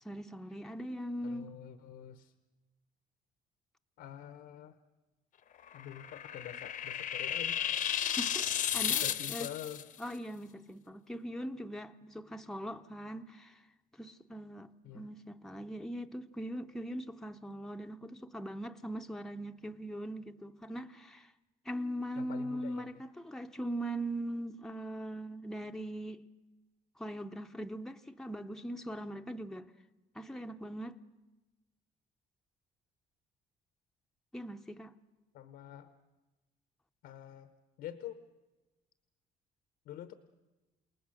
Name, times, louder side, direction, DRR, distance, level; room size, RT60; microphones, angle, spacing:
voice 1, 0.0-1.5 8.2-9.0 9.3-9.5 10.0-13.6 14.0-21.3 21.6-26.2 27.0-29.7 30.1-30.9 34.3-34.9, right 1 dB, 5° left, 0.7 m, -41 dB
voice 2, 1.2-2.3 4.0-4.8 5.7-7.8 8.9-9.8 14.8-15.1 22.2-23.1 35.3-35.9 37.0-37.5 37.8-38.2 39.8-40.1, left 11 dB, 80° left, 1.0 m, -46 dB
sound 1, 5.7-9.8, left 9 dB, 50° left, 0.8 m, -33 dB
29.0 x 19.0 x 6.4 m
cardioid pair, 110°, 17 cm